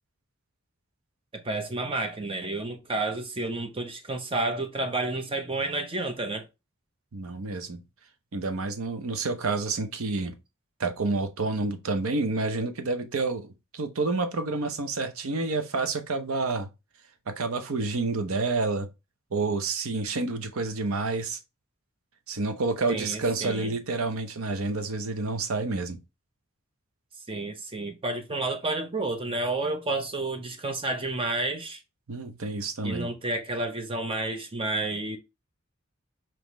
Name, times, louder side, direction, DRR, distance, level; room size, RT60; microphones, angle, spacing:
voice 1, 1.3-6.4 22.9-23.7 27.3-31.8 32.8-35.2, right 2 dB, 25° right, 0.7 m, -30 dB
voice 2, 7.1-7.8 8.3-10.3 10.8-16.7 17.3-18.9 19.3-21.4 22.3-26.0 32.1-33.1, right 3 dB, 90° right, 0.7 m, -29 dB
5.3 x 3.0 x 3.0 m
head